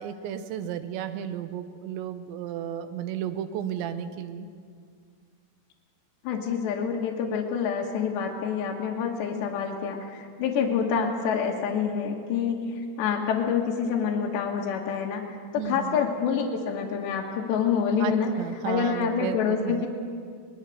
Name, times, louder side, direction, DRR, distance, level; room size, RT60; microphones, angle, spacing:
voice 1, 0.0-4.5 15.6-16.0 18.0-19.9, right 9 dB, 85° right, 10 dB, 3.3 m, -33 dB
voice 2, 6.3-15.2 15.5-18.3 18.7-19.9, left 6 dB, 80° left, -1 dB, 3.6 m, -27 dB
23.0 x 20.0 x 6.7 m, 2.1 s
omnidirectional pair, 5.1 m